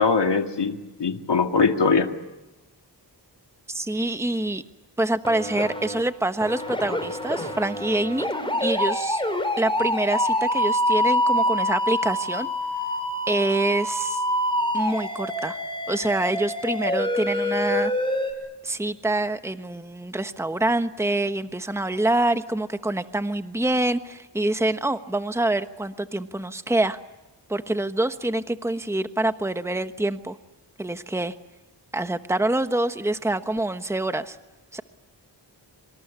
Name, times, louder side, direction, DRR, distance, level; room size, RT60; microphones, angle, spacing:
voice 1, 0.0-2.1, left 4 dB, 70° left, 5 dB, 2.2 m, -21 dB
voice 2, 3.7-4.6 5.0-8.3 8.6-9.2 9.6-12.5 13.3-14.2 14.7-15.6 15.9-17.9 18.6-27.0 27.5-30.4 30.8-31.3 31.9-34.4 34.7-34.8, right 2 dB, 5° right, 9 dB, 1.2 m, -26 dB
sound 1, 5.2-6.0 6.4-18.3, left 1 dB, 10° left, 6.7 m, -26 dB
26.0 x 26.0 x 8.3 m, 1.1 s
wide cardioid pair, 80°, 43 cm